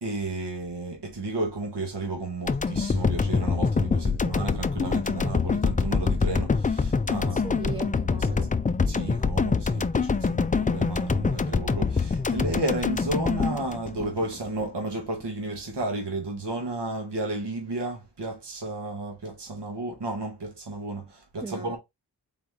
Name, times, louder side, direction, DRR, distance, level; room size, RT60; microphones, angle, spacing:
voice 1, 0.0-7.6 8.0-8.1 8.9-21.8, right 2 dB, 75° right, 1.5 m, -32 dB
sound 1, 2.5-14.7, left 4 dB, 20° left, 0.4 m, -25 dB
voice 2, 7.3-8.5 21.4-21.8, right 4 dB, 15° right, 1.0 m, -38 dB
4.0 x 3.2 x 3.7 m
cardioid pair, 50°, 42 cm